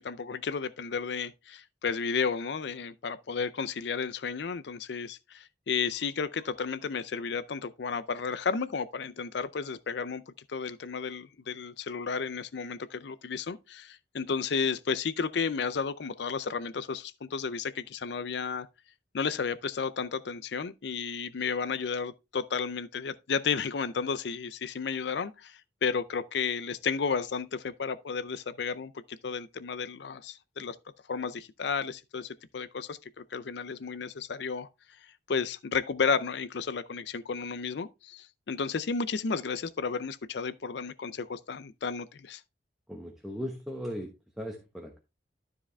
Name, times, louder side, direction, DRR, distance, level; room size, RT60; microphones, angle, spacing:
voice 1, 0.0-18.7 19.1-30.8 31.1-34.7 35.0-42.4, left 5 dB, 65° left, 0.5 m, -33 dB
voice 2, 42.9-45.0, equal, ahead, 1.1 m, -38 dB
12.5 x 4.9 x 3.3 m
head